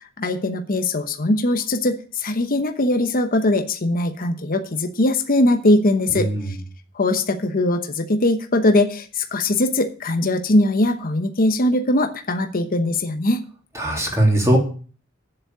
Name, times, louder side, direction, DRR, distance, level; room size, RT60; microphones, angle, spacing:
voice 1, 0.2-6.6 6.9-13.4, left 1 dB, 45° left, 6 dB, 1.0 m, -21 dB
voice 2, 13.7-14.6, right 1 dB, 15° right, -1 dB, 3.1 m, -19 dB
7.9 x 7.5 x 6.9 m, 0.40 s
head